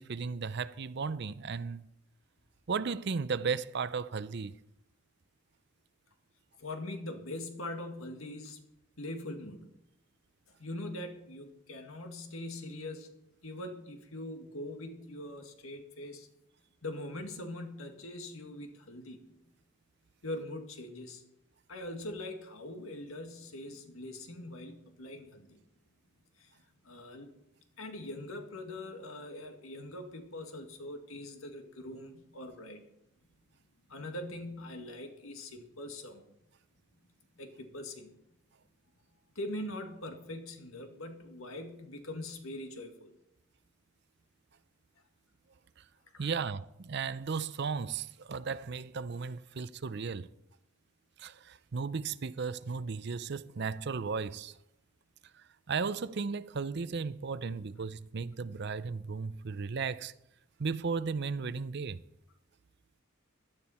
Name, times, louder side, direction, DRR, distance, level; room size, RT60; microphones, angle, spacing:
voice 1, 0.0-1.9 2.7-4.5 46.2-50.3 51.2-54.6 55.3-60.1 60.6-62.0, right 5 dB, 55° right, 0.5 m, -35 dB
voice 2, 6.6-8.6 9.0-9.7 10.6-13.1 13.4-16.3 16.8-19.3 20.2-21.2 21.7-25.6 26.4-26.5 26.8-27.3 27.8-32.8 33.9-36.2 37.4-38.1 39.4-43.2 46.1-46.3, left 1 dB, 85° left, 2.0 m, -42 dB
16.5 x 12.0 x 4.3 m
head